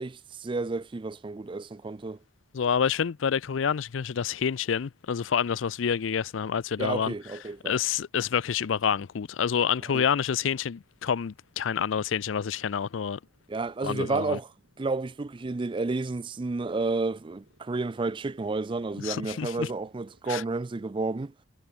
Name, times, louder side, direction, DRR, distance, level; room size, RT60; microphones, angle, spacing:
voice 1, 0.0-2.2 6.8-7.8 9.9-10.1 13.5-14.5 14.8-21.3, right 3 dB, 25° right, 0.4 m, -31 dB
voice 2, 2.5-7.1 7.6-13.2 13.8-14.4 19.0-19.7 20.3-20.4, left 7 dB, 90° left, 0.5 m, -28 dB
Motorcycle, 8.4-20.2, right 1 dB, 85° right, 7.3 m, -67 dB
head